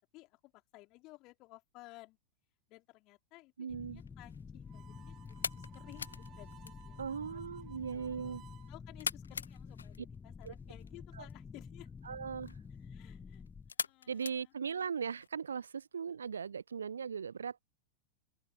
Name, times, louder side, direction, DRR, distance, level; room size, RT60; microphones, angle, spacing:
voice 1, 0.0-2.2 2.7-7.4 7.9-8.4 8.7-11.9 12.8-13.4 13.8-14.5, left 21 dB, 40° left, 3.8 m, -57 dB
voice 2, 3.6-4.0 7.0-8.4 10.4-10.5 11.1-11.2 12.1-12.6 14.1-17.6, right 6 dB, 70° right, 0.4 m, -39 dB
sound 1, 3.7-13.7, left 6 dB, 15° left, 0.5 m, -49 dB
sound 2, 3.9-15.3, left 6 dB, 70° left, 0.7 m, -46 dB
Harmonica, 4.7-8.7, right 13 dB, 30° right, 1.6 m, -59 dB
open air
figure-of-eight pair, 90°, 0 cm